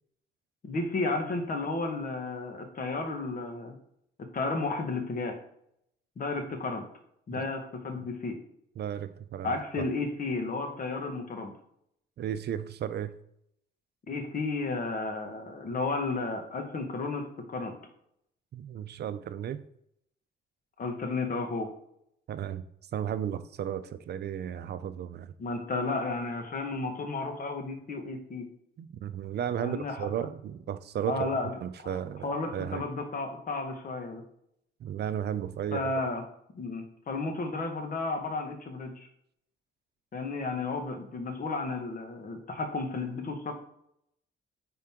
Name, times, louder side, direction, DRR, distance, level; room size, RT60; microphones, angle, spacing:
voice 1, 0.6-3.7 4.2-5.3 6.2-6.8 7.3-8.4 9.4-11.5 14.1-17.8 20.8-21.7 25.4-28.5 29.5-30.1 31.1-31.5 31.8-34.2 35.7-36.2 36.5-39.1 40.1-43.5, left 3 dB, 45° left, 4 dB, 1.5 m, -33 dB
voice 2, 8.8-9.9 12.2-13.1 18.5-19.6 22.3-25.3 28.8-32.8 34.8-35.9, right 9 dB, 55° right, 12 dB, 0.5 m, -34 dB
9.0 x 3.8 x 3.7 m, 0.74 s
cardioid pair, 90°, 20 cm